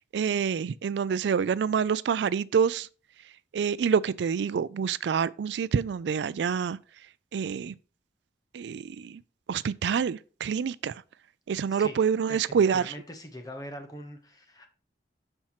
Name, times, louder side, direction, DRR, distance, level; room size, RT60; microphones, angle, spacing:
voice 1, 0.1-2.9 3.5-6.8 7.3-7.7 8.5-9.2 9.5-10.9 11.5-12.9, right 6 dB, 85° right, 0.3 m, -27 dB
voice 2, 11.7-12.0 12.3-14.7, equal, 20° left, 1.0 m, -42 dB
13.0 x 4.4 x 3.0 m
head